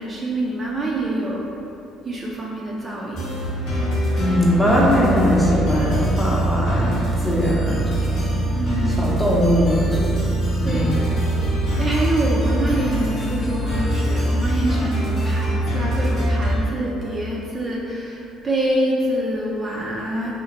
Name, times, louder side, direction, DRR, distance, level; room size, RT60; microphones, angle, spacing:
voice 1, 0.0-1.4 2.0-3.3 8.5-9.1 10.6-11.0 11.5-20.3, right 1 dB, 35° right, -4 dB, 0.4 m, -26 dB
sound 1, 3.1-16.6, right 1 dB, 65° left, 0.9 m, -23 dB
voice 2, 4.2-8.3 9.0-11.0, left 1 dB, 10° left, -5 dB, 0.7 m, -21 dB
2.7 x 2.0 x 2.8 m, 2.7 s
supercardioid pair, 75°, 0 cm